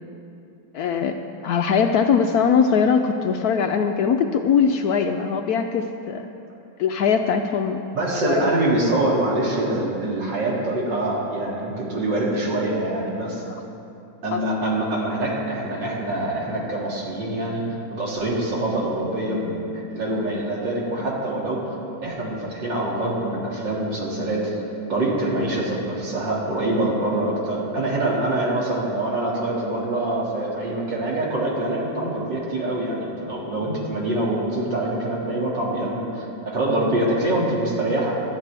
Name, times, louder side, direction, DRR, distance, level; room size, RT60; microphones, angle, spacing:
voice 1, 0.7-1.2 1.4-6.3 6.8-7.8 8.2-8.4 14.3-14.4, left 6 dB, 80° left, 5 dB, 0.8 m, -21 dB
voice 2, 7.9-13.4 14.2-17.6 17.9-21.6 22.0-24.5 24.9-38.2, right 1 dB, 60° right, -4 dB, 2.9 m, -25 dB
19.0 x 12.0 x 3.4 m, 2.8 s
omnidirectional pair, 2.2 m